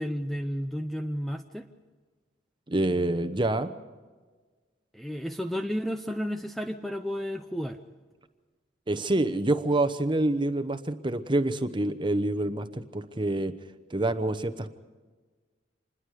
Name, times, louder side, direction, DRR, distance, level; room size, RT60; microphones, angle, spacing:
voice 1, 0.0-1.7 4.9-7.8, equal, ahead, 6 dB, 0.6 m, -32 dB
voice 2, 2.7-3.7 8.9-13.5 13.9-14.8, right 2 dB, 25° right, 10 dB, 1.0 m, -27 dB
27.0 x 21.0 x 5.0 m, 1.4 s
head